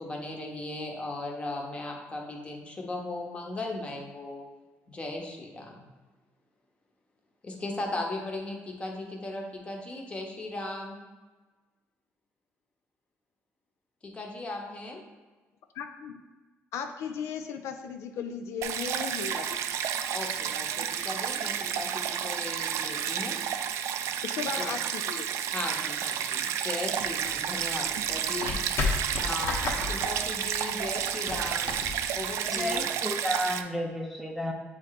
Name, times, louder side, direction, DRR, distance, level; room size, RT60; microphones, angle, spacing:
voice 1, 0.0-4.5 4.9-5.9 7.4-11.0 14.0-15.0 20.1-23.4 25.5-28.6 29.2-31.8 32.1-32.9, left 2 dB, 25° left, 0 dB, 1.1 m, -37 dB
voice 2, 15.7-16.2 16.7-19.5 24.2-25.3, left 7 dB, 75° left, 6 dB, 0.5 m, -36 dB
Stream, 18.6-33.6, right 9 dB, 75° right, 0.3 m, -31 dB
sound 1, 26.9-32.9, left 3 dB, 55° left, 1.1 m, -34 dB
voice 3, 32.5-34.5, equal, 5° right, 1 dB, 0.6 m, -32 dB
7.2 x 3.2 x 4.0 m, 1.3 s
cardioid pair, 130°, 5 cm